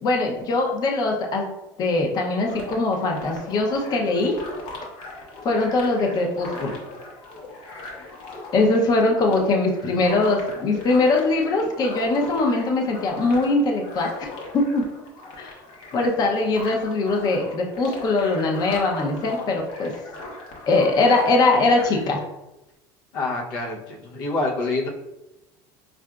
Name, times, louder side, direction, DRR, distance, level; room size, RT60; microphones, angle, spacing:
voice 1, 0.0-1.5 1.8-4.4 5.4-6.8 8.5-14.3 14.5-14.8 15.4-15.5 15.9-19.9 20.7-22.2, left 2 dB, 40° left, 1 dB, 0.6 m, -21 dB
sound 1, 2.5-22.1, left 2 dB, 60° left, 1.0 m, -39 dB
voice 2, 23.1-24.9, left 2 dB, 85° left, -1 dB, 0.7 m, -26 dB
4.7 x 2.5 x 2.3 m, 0.97 s
supercardioid pair, 125°, 10 cm